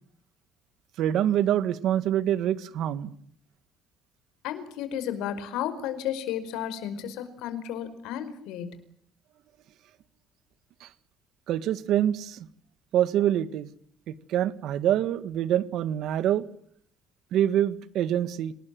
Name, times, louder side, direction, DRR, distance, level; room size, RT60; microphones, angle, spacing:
voice 1, 1.0-3.1 10.8-10.9 11.5-12.5 12.9-13.7 14.3-16.5 17.3-18.5, right 11 dB, 60° right, 1.7 m, -25 dB
voice 2, 4.4-8.8, left 10 dB, 90° left, 4.9 m, -33 dB
28.5 x 20.0 x 7.7 m
cardioid pair, 170°, 0 cm